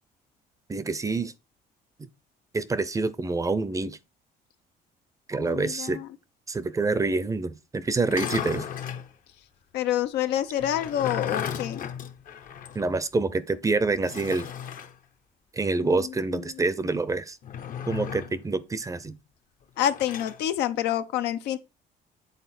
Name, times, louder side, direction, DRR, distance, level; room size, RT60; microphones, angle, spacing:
voice 1, 0.7-1.3 2.0-2.1 2.5-4.0 5.3-6.0 6.5-8.7 12.7-14.5 15.5-17.4 17.9-19.1, right 3 dB, 20° right, 0.6 m, -27 dB
voice 2, 5.4-6.1 9.7-11.8 15.8-16.1 19.8-21.6, left 11 dB, 85° left, 0.8 m, -27 dB
sound 1, 8.0-9.1 10.6-12.9 13.1-13.2 14.0-14.9 17.4-18.4 19.8-20.4, left 8 dB, 55° left, 0.9 m, -35 dB
8.2 x 3.9 x 4.2 m
cardioid pair, 110°, 17 cm